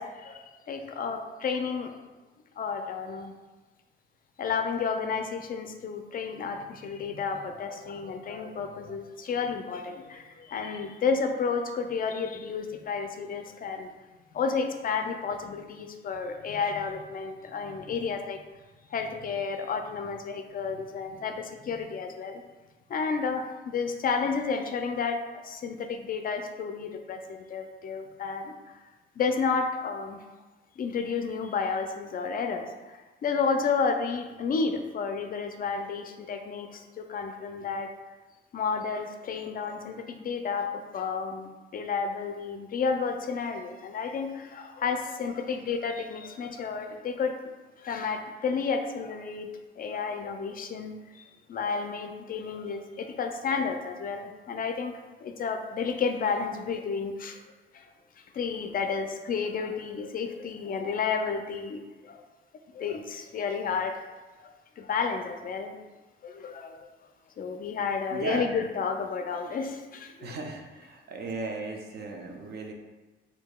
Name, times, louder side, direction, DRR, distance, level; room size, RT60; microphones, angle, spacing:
voice 1, 0.0-2.0 2.6-3.3 4.4-13.9 14.3-18.4 18.9-22.4 22.9-25.2 25.4-28.8 29.2-30.2 30.8-37.9 38.5-40.7 40.9-47.3 47.8-49.5 49.8-51.2 51.5-54.9 55.2-57.4 57.7-57.9 58.3-62.2 62.7-63.9 64.4-64.5 64.8-65.8 66.2-66.9 67.4-70.3, left 5 dB, 45° left, 5 dB, 0.4 m, -31 dB
voice 2, 68.1-68.6 70.2-72.7, right 3 dB, 55° right, 2 dB, 0.5 m, -36 dB
4.5 x 2.6 x 2.2 m, 1.2 s
cardioid pair, 90°, 20 cm